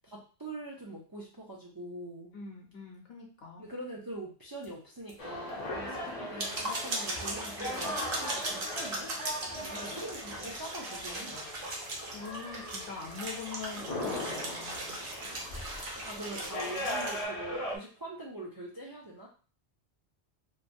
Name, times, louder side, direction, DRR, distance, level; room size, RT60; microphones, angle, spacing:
voice 1, 0.0-2.3 3.6-11.5 15.7-19.3, right 1 dB, 40° right, -4 dB, 0.3 m, -43 dB
voice 2, 2.3-3.7 9.5-10.0 12.1-15.0, left 5 dB, 65° left, 0 dB, 1.0 m, -44 dB
sound 1, 4.6-4.7 5.1-5.2 5.5-5.6 6.1-17.2, right 2 dB, 55° right, 0.8 m, -38 dB
sound 2, 5.2-17.8, left 1 dB, 45° left, 0.5 m, -39 dB
2.9 x 2.2 x 2.5 m, 0.37 s
omnidirectional pair, 1.2 m